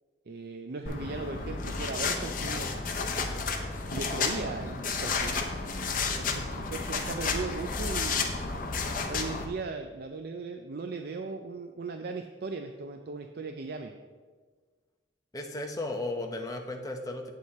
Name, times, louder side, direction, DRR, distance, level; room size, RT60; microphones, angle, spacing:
voice 1, 0.3-2.7 3.9-5.4 6.1-8.3 9.1-13.9, right 3 dB, 60° right, 5 dB, 0.5 m, -37 dB
sound 1, 0.9-9.5, left 4 dB, 50° left, 0.9 m, -32 dB
voice 2, 15.3-17.3, left 2 dB, 20° left, 3 dB, 0.8 m, -35 dB
8.2 x 8.2 x 4.2 m, 1.5 s
head